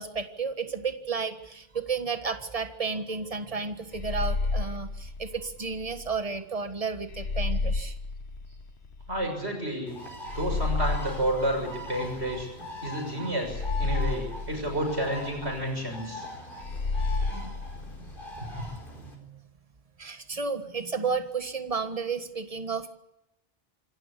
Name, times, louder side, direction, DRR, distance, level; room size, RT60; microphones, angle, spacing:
voice 1, 0.0-7.9 17.4-17.5 17.8-18.1 18.5-18.6 18.9-19.4 20.0-22.9, right 5 dB, 35° right, 9 dB, 1.6 m, -32 dB
sound 1, 3.9-6.1 7.1-9.3 10.3-12.6 13.4-15.6 16.6-18.8, left 3 dB, 90° left, 1.6 m, -32 dB
voice 2, 9.1-9.9 10.3-12.5 12.8-16.3 17.3-17.4, right 1 dB, 90° right, 3 dB, 6.9 m, -30 dB
Bird, 9.9-19.1, left 1 dB, 55° left, 4.8 m, -42 dB
26.5 x 14.0 x 8.3 m, 0.89 s
omnidirectional pair, 1.1 m